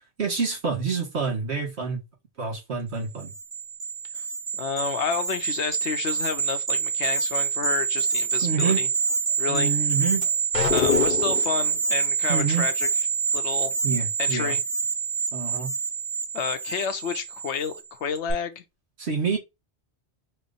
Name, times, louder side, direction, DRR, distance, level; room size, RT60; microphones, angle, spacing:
voice 1, 0.2-2.0 2.4-3.3 8.4-8.8 9.5-10.2 12.3-12.7 13.8-14.5 15.3-15.7 19.0-19.4, right 5 dB, 75° right, 2.0 m, -27 dB
sound 1, 3.2-17.8 18.1-18.3, right 6 dB, 45° right, 1.1 m, -26 dB
voice 2, 4.5-8.9 9.4-9.7 10.7-12.9 13.3-13.7 14.2-14.6 16.3-18.6, left 7 dB, 85° left, 0.9 m, -30 dB
sound 2, 10.5-11.6, left 6 dB, 55° left, 0.8 m, -24 dB
4.4 x 2.0 x 4.0 m
omnidirectional pair, 1.1 m